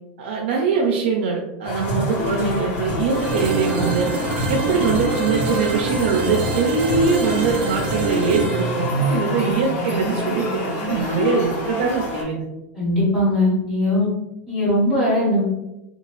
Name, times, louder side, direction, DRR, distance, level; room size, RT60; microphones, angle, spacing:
voice 1, 0.2-4.1 4.5-12.4, right 5 dB, 80° right, -1 dB, 0.5 m, -22 dB
sound 1, 1.6-12.2, left 1 dB, 35° left, 0.7 m, -26 dB
sound 2, 3.1-10.9, right 3 dB, 20° right, 0.4 m, -28 dB
voice 2, 12.7-14.1 14.5-15.4, left 1 dB, 10° left, -13 dB, 1.3 m, -19 dB
2.9 x 2.3 x 3.0 m, 0.93 s
supercardioid pair, 175°, 6 cm